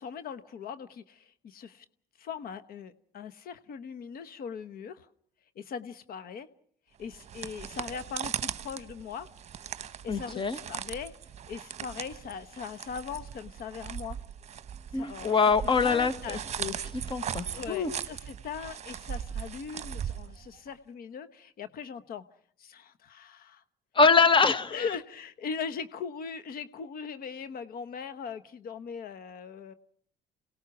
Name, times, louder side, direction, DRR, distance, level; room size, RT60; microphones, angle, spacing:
voice 1, 0.0-1.8 2.2-5.1 5.6-6.5 7.0-9.3 10.0-11.2 11.5-14.2 14.9-15.4 15.8-16.4 17.5-22.2 22.6-23.6 24.7-29.7, left 6 dB, 60° left, 12 dB, 1.1 m, -40 dB
sound 1, 7.0-20.7, right 8 dB, 40° right, 1.1 m, -39 dB
voice 2, 10.1-10.6 14.9-17.9 23.9-24.7, left 4 dB, 30° left, 13 dB, 1.6 m, -24 dB
28.0 x 19.0 x 6.0 m, 0.62 s
cardioid pair, 110°, 17 cm